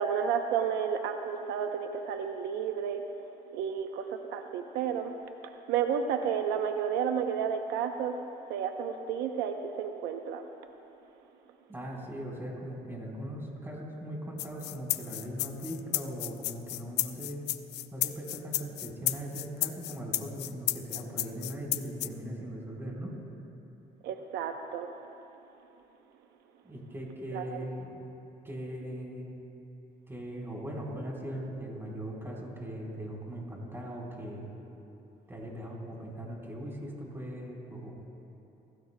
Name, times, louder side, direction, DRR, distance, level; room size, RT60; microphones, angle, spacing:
voice 1, 0.0-3.0 3.5-5.1 5.4-8.2 8.5-10.4 24.0-24.9 27.3-27.6, right 7 dB, 90° right, 5 dB, 0.8 m, -31 dB
voice 2, 11.7-17.4 17.9-23.1 26.6-27.9 28.4-29.4 30.1-34.5 35.3-38.1, equal, 15° right, -3 dB, 4.0 m, -39 dB
sound 1, 14.4-22.1, left 15 dB, 85° left, 0.5 m, -32 dB
28.0 x 16.5 x 2.2 m, 3.0 s
cardioid pair, 110°, 17 cm